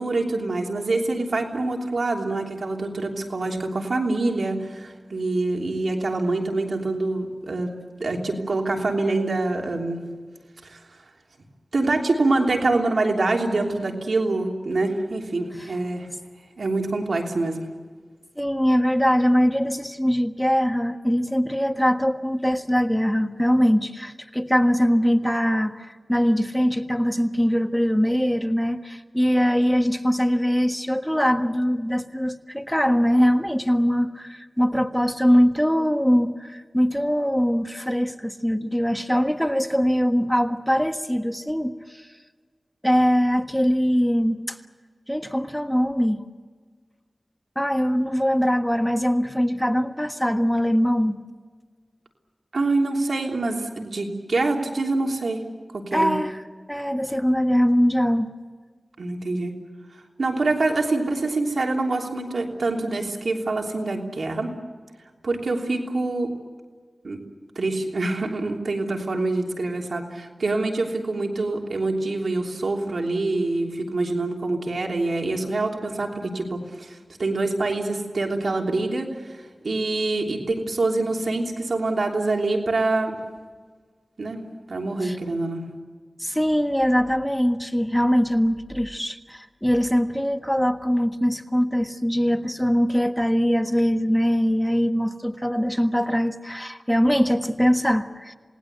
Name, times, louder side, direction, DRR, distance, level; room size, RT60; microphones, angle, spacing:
voice 1, 0.0-7.7 8.0-10.1 10.7-10.8 11.7-16.1 16.6-17.6 52.5-55.4 55.7-56.1 59.0-59.5 60.2-64.5 65.2-66.3 67.0-67.2 67.5-79.1 79.6-83.2 84.2-84.4 84.7-85.7, right 2 dB, 90° right, 1 dB, 3.2 m, -25 dB
voice 2, 18.4-42.1 42.8-44.6 45.1-46.3 47.5-51.2 55.9-56.4 56.7-58.3 85.0-85.2 86.2-98.3, equal, 5° left, 7 dB, 1.5 m, -22 dB
28.0 x 19.5 x 8.1 m, 1.5 s
wide cardioid pair, 50°, 0 cm